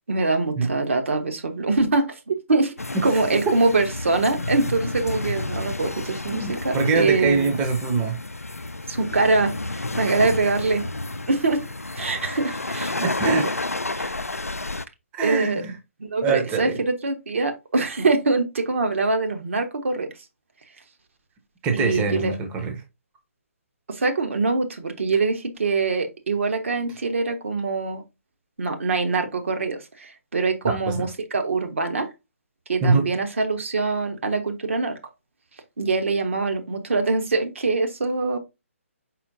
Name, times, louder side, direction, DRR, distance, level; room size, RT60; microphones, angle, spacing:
voice 1, 0.1-2.7 3.0-7.6 8.9-10.9 11.3-11.6 11.9-13.4 13.9-14.1 15.2-15.6 16.0-20.1 21.7-22.3 23.9-28.0 28.6-32.1 32.7-35.0 35.8-38.4, right 3 dB, 60° right, 1.0 m, -24 dB
sound 1, 2.8-14.9, left 2 dB, 90° left, 0.4 m, -31 dB
voice 2, 6.3-8.2 13.0-13.5 15.1-15.8 16.2-16.8 21.6-22.8 30.9-31.1 32.8-33.1, right 4 dB, 15° right, 0.7 m, -23 dB
4.3 x 4.2 x 2.6 m
figure-of-eight pair, 135°, 8 cm